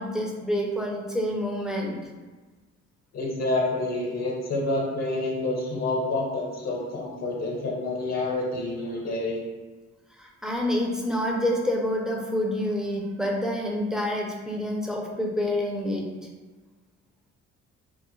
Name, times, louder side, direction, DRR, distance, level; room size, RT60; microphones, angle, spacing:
voice 1, 0.0-2.0 10.2-16.1, left 1 dB, ahead, -1 dB, 0.4 m, -27 dB
voice 2, 3.1-9.4, left 2 dB, 60° left, -2 dB, 0.7 m, -28 dB
2.3 x 2.0 x 2.9 m, 1.3 s
cardioid pair, 90°, 30 cm